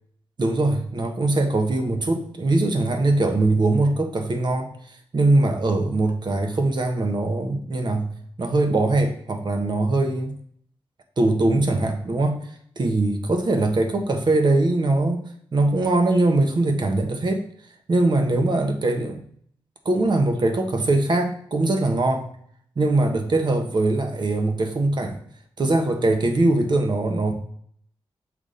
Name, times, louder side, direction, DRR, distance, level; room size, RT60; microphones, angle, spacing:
voice 1, 0.4-4.7 5.1-10.3 11.2-12.4 12.8-15.2 15.5-17.4 17.9-19.2 19.8-22.3 22.8-25.2 25.6-27.3, right 2 dB, 50° right, 4 dB, 1.1 m, -21 dB
6.7 x 3.6 x 3.9 m, 0.63 s
cardioid pair, 65°, 10 cm